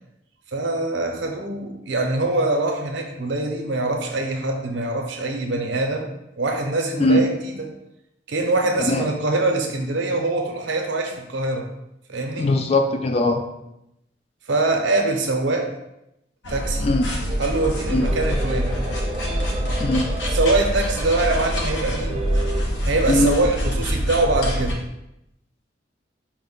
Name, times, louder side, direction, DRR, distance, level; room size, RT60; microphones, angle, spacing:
voice 1, 0.5-6.1 6.4-7.5 8.3-11.7 12.1-12.5 14.5-15.7 16.5-16.9 17.4-18.8 20.3-22.2 22.8-24.8, right 2 dB, 75° right, 2 dB, 0.6 m, -23 dB
voice 2, 12.4-13.4 16.8-17.1 17.9-18.1 19.8-20.1 23.1-23.3, left 2 dB, 35° left, 5 dB, 0.3 m, -20 dB
sound 1, 16.4-24.7, equal, 75° left, 0.8 m, -25 dB
sound 2, 17.3-22.6, right 2 dB, 35° right, 0.4 m, -33 dB
4.6 x 2.1 x 3.7 m, 0.86 s
head